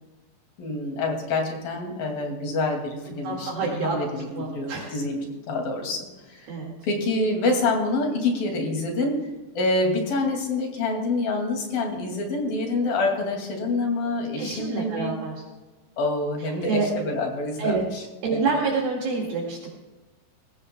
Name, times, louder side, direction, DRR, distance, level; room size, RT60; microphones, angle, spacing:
voice 1, 0.6-5.2 5.5-6.5 6.8-9.2 9.6-15.2 16.0-18.0, left 2 dB, 60° left, 1 dB, 3.9 m, -26 dB
voice 2, 3.1-4.9 6.5-6.7 14.4-15.4 16.4-16.9 17.6-17.8 18.2-19.7, right 4 dB, 65° right, -3 dB, 3.6 m, -27 dB
20.5 x 15.5 x 2.2 m, 1.2 s
omnidirectional pair, 4.9 m